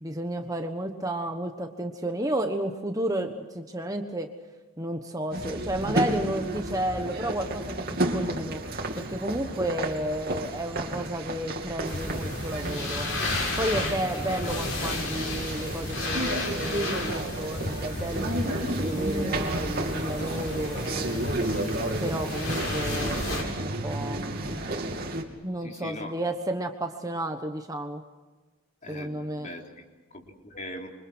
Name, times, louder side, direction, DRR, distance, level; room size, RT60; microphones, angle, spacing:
voice 1, 0.0-4.3 4.8-8.6 9.0-13.2 13.6-21.2 22.0-24.6 25.4-28.0 28.9-29.5, right 1 dB, 15° right, 5 dB, 1.3 m, -32 dB
sound 1, 5.3-25.2, right 1 dB, 45° right, 3.0 m, -32 dB
sound 2, 11.9-23.4, left 2 dB, 60° left, 7.0 m, -33 dB
voice 2, 20.5-21.1 25.6-26.1 28.8-30.9, left 1 dB, 35° left, 2 dB, 3.4 m, -41 dB
27.0 x 25.0 x 6.3 m, 1.2 s
head